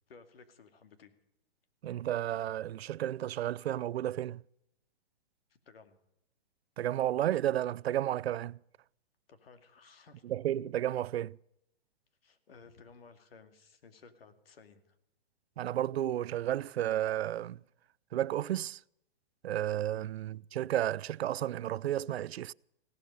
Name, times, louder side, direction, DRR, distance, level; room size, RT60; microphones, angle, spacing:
voice 1, 0.1-1.1 5.5-6.0 9.3-10.2 12.2-15.0 19.9-20.1, left 4 dB, 70° left, 2.4 m, -57 dB
voice 2, 1.8-4.4 6.8-8.6 10.2-11.4 15.6-17.6 18.1-18.8 19.4-22.5, right 12 dB, 90° right, 0.5 m, -32 dB
16.5 x 12.5 x 6.7 m
hypercardioid pair, 170°, 30 cm